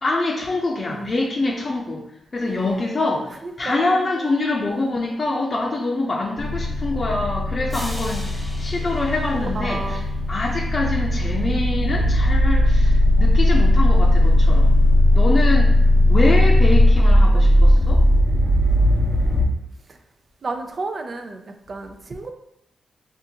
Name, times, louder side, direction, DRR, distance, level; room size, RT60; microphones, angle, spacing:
voice 1, 0.0-2.0 2.3-10.0 10.3-14.7 15.1-15.7 16.1-18.0, left 2 dB, 45° left, -2 dB, 0.5 m, -25 dB
voice 2, 2.4-2.8 3.4-4.9 9.3-10.1 11.8-12.0 17.0-17.5 17.8-17.9 19.9-20.0 20.4-22.3, right 3 dB, 55° right, 6 dB, 0.4 m, -33 dB
sound 1, 6.4-19.4, left 1 dB, 25° right, 0.9 m, -17 dB
sound 2, 7.7-10.4, equal, ahead, 1.1 m, -39 dB
3.6 x 2.5 x 2.8 m, 0.77 s
cardioid pair, 70°, 0 cm